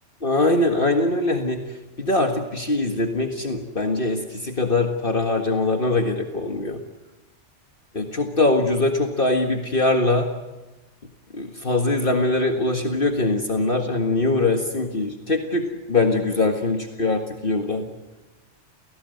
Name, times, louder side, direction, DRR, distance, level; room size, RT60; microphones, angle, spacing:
voice 1, 0.2-1.6 2.0-6.8 7.9-10.3 11.3-17.9, left 2 dB, 45° left, 4 dB, 1.9 m, -22 dB
30.0 x 17.5 x 7.9 m, 1.1 s
omnidirectional pair, 1.2 m